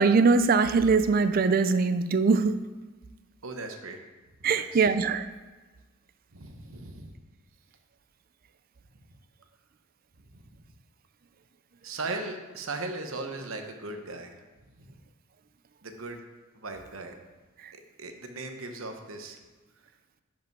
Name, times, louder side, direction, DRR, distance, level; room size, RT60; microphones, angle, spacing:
voice 1, 0.0-2.5 4.4-5.2, right 4 dB, 45° right, 11 dB, 0.4 m, -22 dB
voice 2, 3.4-4.0 4.6-4.9 6.3-7.2 11.8-14.4 14.8-14.9 15.8-16.2 16.5-17.2 17.7-19.4, right 3 dB, 80° right, 5 dB, 0.9 m, -38 dB
10.5 x 5.1 x 4.6 m, 1.2 s
head